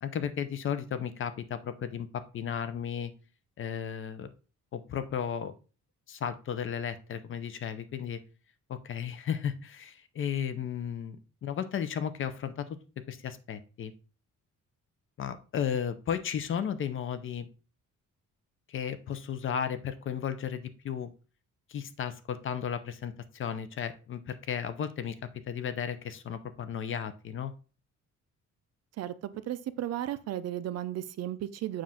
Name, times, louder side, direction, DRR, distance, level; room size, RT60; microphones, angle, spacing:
voice 1, 0.0-3.1 3.6-4.3 4.7-5.5 6.1-8.2 8.7-12.7 13.1-13.9 15.2-17.5 18.7-21.1 21.7-25.2 25.5-27.5, left 8 dB, 40° left, 12 dB, 0.5 m, -34 dB
voice 2, 29.0-31.8, right 12 dB, 55° right, 13 dB, 0.5 m, -35 dB
7.4 x 2.5 x 5.7 m, 0.36 s
cardioid pair, 165°, 30 cm